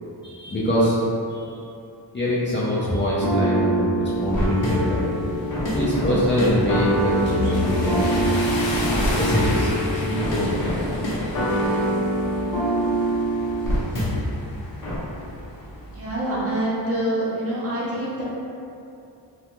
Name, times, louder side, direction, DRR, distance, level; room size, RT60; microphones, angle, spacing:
voice 1, 0.2-1.0 1.4-1.6 2.1-5.2 5.7-8.1 9.2-10.9, equal, 25° left, -9 dB, 0.4 m, -24 dB
sound 1, 3.2-14.4 14.8-15.0, right 1 dB, 45° left, 0.7 m, -25 dB
sound 2, 4.0-16.1, left 2 dB, 85° left, 0.6 m, -31 dB
voice 2, 15.9-18.2, right 1 dB, 35° right, -8 dB, 0.7 m, -26 dB
2.3 x 2.2 x 2.9 m, 2.7 s
wide cardioid pair, 105°, 44 cm